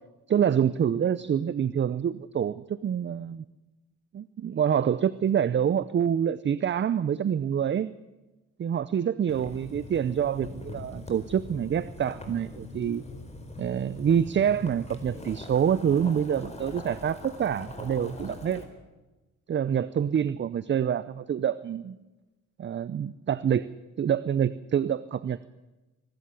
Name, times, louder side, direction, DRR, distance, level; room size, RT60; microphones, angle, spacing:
voice 1, 0.3-3.4 4.1-7.9 8.6-13.0 13.6-18.6 19.5-22.0 22.6-23.7 24.0-25.4, right 8 dB, 40° right, 16 dB, 0.6 m, -26 dB
Boiling, 9.3-18.6, left 2 dB, 20° left, 4.5 m, -42 dB
25.0 x 13.0 x 9.7 m, 1.1 s
cardioid pair, 90°, 30 cm